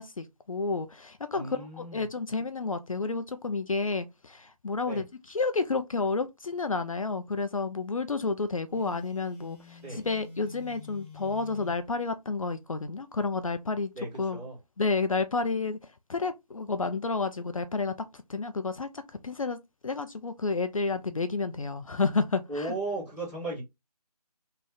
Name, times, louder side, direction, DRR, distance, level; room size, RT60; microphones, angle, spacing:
voice 1, 0.0-13.9 14.2-14.4 14.8-15.8 16.1-19.6 19.8-22.8, left 4 dB, 55° left, 0.4 m, -30 dB
voice 2, 1.3-2.1 4.8-5.0 9.8-10.1 13.9-14.6 22.5-23.6, right 2 dB, 10° right, 1.3 m, -36 dB
Telephone, 8.7-11.8, left 4 dB, 5° left, 1.0 m, -47 dB
3.2 x 2.4 x 3.7 m
figure-of-eight pair, 155°, 20 cm